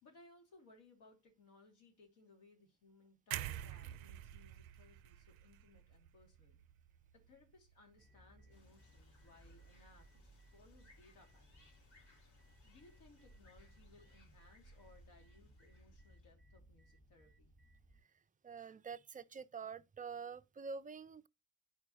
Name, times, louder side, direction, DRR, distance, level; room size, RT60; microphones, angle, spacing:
voice 1, 0.0-6.6 7.1-11.7 12.6-17.5, left 3 dB, 65° left, 2.6 m, -65 dB
sound 1, 3.3-7.3 7.7-7.9, right 12 dB, 85° right, 0.5 m, -47 dB
sound 2, 8.0-18.0, right 1 dB, ahead, 1.4 m, -63 dB
sound 3, 8.5-16.3, left 2 dB, 45° left, 2.9 m, -69 dB
voice 2, 18.4-21.3, right 5 dB, 20° right, 0.4 m, -47 dB
10.0 x 4.7 x 2.9 m
hypercardioid pair, 60°, 40 cm